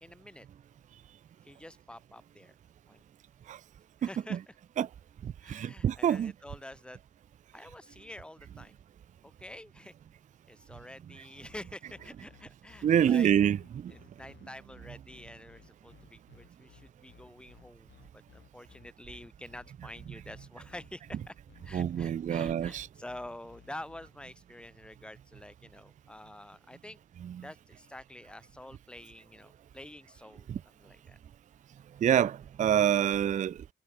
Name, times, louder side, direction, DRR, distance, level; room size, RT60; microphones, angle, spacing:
voice 1, 0.0-0.5 1.4-2.5 2.9-3.0 4.0-4.6 5.4-7.0 7.5-8.7 9.2-9.9 10.5-13.3 13.9-21.4 21.6-27.0 27.4-31.2, left 1 dB, 5° left, 2.4 m, -48 dB
voice 2, 5.2-6.3 12.8-13.9 21.7-22.9 30.5-30.6 32.0-33.7, right 9 dB, 35° right, 0.4 m, -26 dB
sound 1, 11.5-24.1, left 9 dB, 60° left, 7.6 m, -58 dB
wide cardioid pair, 165°, 21 cm